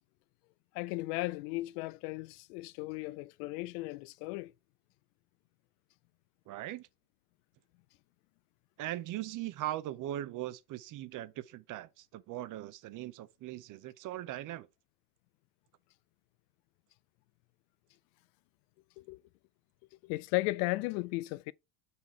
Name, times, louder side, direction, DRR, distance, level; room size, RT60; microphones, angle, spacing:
voice 1, 0.7-4.5 19.0-19.2 20.0-21.5, left 21 dB, 65° left, 0.5 m, -35 dB
voice 2, 6.5-6.9 8.8-14.7, right 14 dB, 40° right, 0.5 m, -40 dB
5.8 x 4.2 x 4.6 m
supercardioid pair, 110°, 50 cm